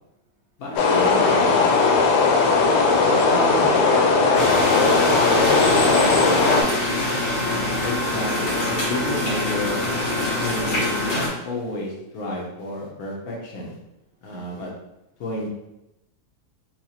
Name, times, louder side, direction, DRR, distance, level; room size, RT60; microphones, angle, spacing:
voice 1, 0.6-1.7 7.8-9.8 10.4-13.8 14.2-14.7 15.2-15.5, left 2 dB, 65° left, -3 dB, 1.3 m, -31 dB
sound 1, 0.8-6.6, left 4 dB, 90° left, 1.2 m, -18 dB
voice 2, 3.0-6.7, right 2 dB, 65° right, -3 dB, 0.8 m, -29 dB
sound 2, 4.3-11.3, left 1 dB, 40° left, 1.2 m, -24 dB
4.6 x 2.4 x 2.8 m, 0.90 s
omnidirectional pair, 1.8 m